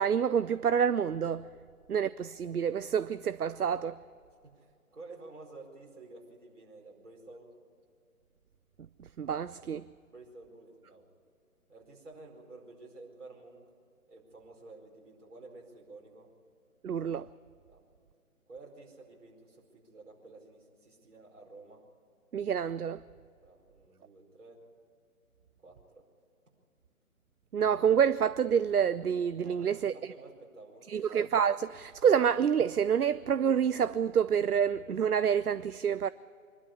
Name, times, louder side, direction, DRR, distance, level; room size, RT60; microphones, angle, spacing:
voice 1, 0.0-1.5 1.9-4.0 9.2-9.9 16.8-17.3 22.3-23.0 27.5-29.9 30.9-36.1, right 7 dB, 85° right, 0.6 m, -27 dB
voice 2, 4.4-7.5 10.1-11.0 11.7-13.6 14.1-16.3 17.7-17.8 18.5-21.8 23.4-24.6 25.6-26.1 29.4-31.1, right 3 dB, 55° right, 4.8 m, -51 dB
24.0 x 12.0 x 9.8 m
figure-of-eight pair, 150°, 44 cm